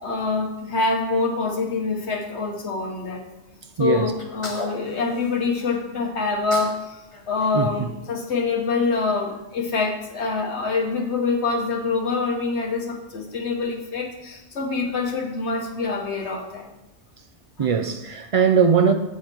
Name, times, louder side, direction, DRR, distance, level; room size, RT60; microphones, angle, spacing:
voice 1, 0.0-3.2 3.8-16.7 17.6-17.7, left 4 dB, 65° left, 1.6 m, -25 dB
voice 2, 3.8-4.1 7.5-7.7 17.6-18.9, right 6 dB, 65° right, 0.3 m, -19 dB
Sneeze, 4.2-5.8 6.2-6.8 7.1-8.6, left 1 dB, 25° left, 1.2 m, -38 dB
7.2 x 7.2 x 4.5 m
omnidirectional pair, 1.3 m